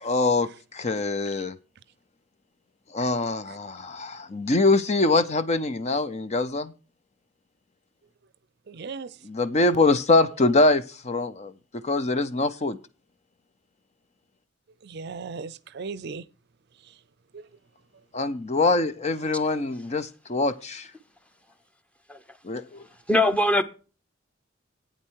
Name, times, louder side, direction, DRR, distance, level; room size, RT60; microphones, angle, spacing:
voice 1, 0.0-1.6 2.9-6.7 9.2-11.5 11.8-12.8 18.1-20.9 22.4-22.8, left 2 dB, 35° left, 0.7 m, -24 dB
voice 2, 8.7-9.1 14.8-16.2 17.3-17.5, right 4 dB, 60° right, 0.5 m, -36 dB
voice 3, 23.1-23.6, left 1 dB, 5° left, 0.9 m, -20 dB
12.0 x 8.7 x 4.6 m
head